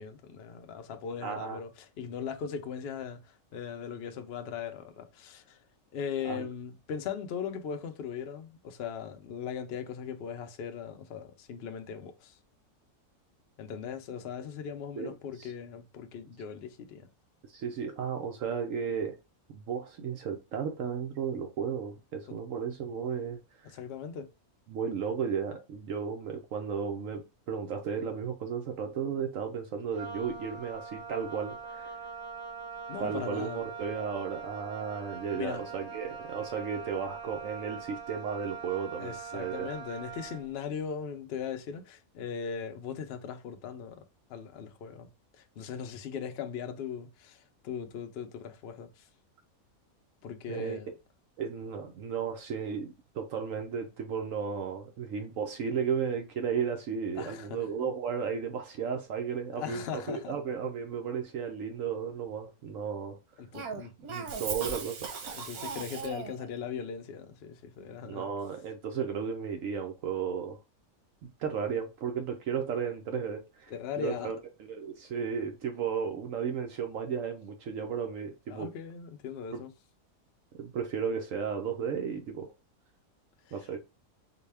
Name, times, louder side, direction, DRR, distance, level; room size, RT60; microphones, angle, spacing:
voice 1, 0.0-5.6 5.9-12.3 13.6-17.1 22.3-22.4 23.7-24.3 32.9-33.6 35.3-35.7 39.0-44.0 44.3-45.1 45.4-49.0 50.2-50.9 57.1-57.6 59.6-60.3 63.4-63.9 65.3-68.3 73.7-74.3 78.5-79.7, left 7 dB, 60° left, 0.7 m, -39 dB
voice 2, 1.2-1.6 6.2-6.5 15.0-15.5 17.5-19.2 19.5-23.7 24.7-32.0 33.0-39.8 50.5-50.8 51.4-63.2 64.1-65.4 68.1-70.6 71.4-78.7 79.5-79.6 80.6-82.5 83.5-83.8, right 6 dB, 70° right, 1.0 m, -34 dB
Wind instrument woodwind instrument, 29.9-40.5, right 6 dB, 25° right, 0.5 m, -42 dB
Cough, 63.5-66.5, right 5 dB, 90° right, 1.3 m, -38 dB
3.9 x 2.2 x 3.3 m
omnidirectional pair, 1.5 m